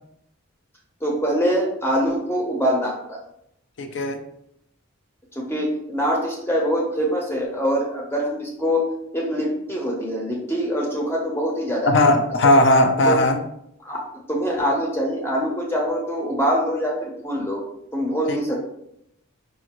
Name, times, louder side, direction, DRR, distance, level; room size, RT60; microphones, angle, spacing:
voice 1, 1.0-3.2 5.3-11.9 12.4-12.5 13.1-13.2 13.8-14.0 14.3-17.6 17.9-18.6, equal, 10° left, -2 dB, 0.8 m, -24 dB
voice 2, 3.8-4.2 11.9-13.4 18.3-18.4, left 1 dB, 55° left, 5 dB, 0.5 m, -17 dB
4.8 x 2.5 x 2.9 m, 0.76 s
head